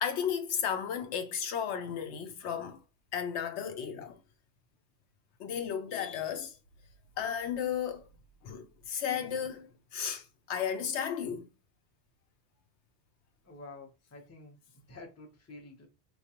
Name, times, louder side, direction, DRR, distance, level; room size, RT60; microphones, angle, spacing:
voice 1, 0.0-2.8 3.1-4.2 5.4-6.6 7.2-8.1 8.4-11.5, left 8 dB, 75° left, 0.8 m, -34 dB
voice 2, 13.4-14.6 14.8-15.9, left 2 dB, 20° left, 0.6 m, -49 dB
4.5 x 2.3 x 2.8 m
omnidirectional pair, 1.2 m